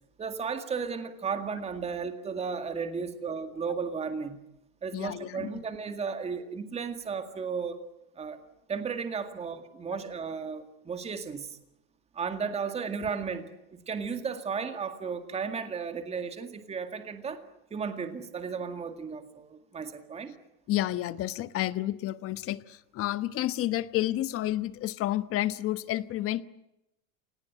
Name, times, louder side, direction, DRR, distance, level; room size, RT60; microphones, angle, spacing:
voice 1, 0.2-4.4 4.8-7.8 8.2-8.4 8.7-11.6 12.1-17.4 17.7-20.3, right 5 dB, 15° right, 8 dB, 2.0 m, -34 dB
voice 2, 4.9-5.6 20.7-26.4, left 14 dB, 35° left, 14 dB, 1.2 m, -30 dB
28.0 x 19.0 x 10.0 m, 0.88 s
supercardioid pair, 145°, 41 cm